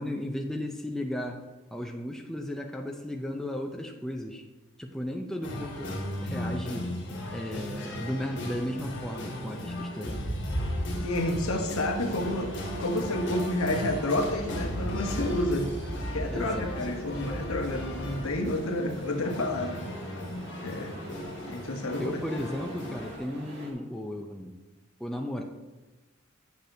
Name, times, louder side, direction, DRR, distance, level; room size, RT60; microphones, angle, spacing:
voice 1, 0.0-1.4 1.7-4.4 4.8-5.9 6.2-6.9 7.3-10.3 16.3-16.8 22.0-24.6 25.0-25.4, left 1 dB, ahead, 2 dB, 0.3 m, -35 dB
sound 1, 5.4-23.2, left 1 dB, 60° left, 1.3 m, -37 dB
sound 2, 10.0-18.5, equal, 20° right, 1.5 m, -37 dB
voice 2, 11.0-15.7 16.1-19.8 20.6-20.9 21.5-22.2, left 1 dB, 85° left, 4 dB, 0.9 m, -30 dB
sound 3, 11.8-23.7, right 1 dB, 55° right, 1.6 m, -45 dB
8.1 x 6.3 x 2.7 m, 1.2 s
head